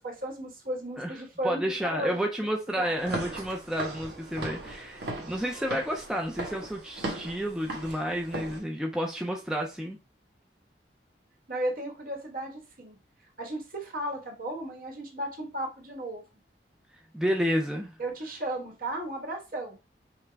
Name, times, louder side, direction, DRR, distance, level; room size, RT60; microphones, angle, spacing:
voice 1, 0.0-2.2 2.7-3.0 11.5-13.0 13.4-16.2 18.0-19.8, right 1 dB, 50° right, 1 dB, 1.2 m, -35 dB
voice 2, 1.4-10.0 17.1-17.9, equal, 5° right, 1 dB, 0.4 m, -30 dB
Walk footsteps / Siren, 3.0-8.6, right 1 dB, 70° right, 1.4 m, -38 dB
5.7 x 2.1 x 3.3 m, 0.29 s
head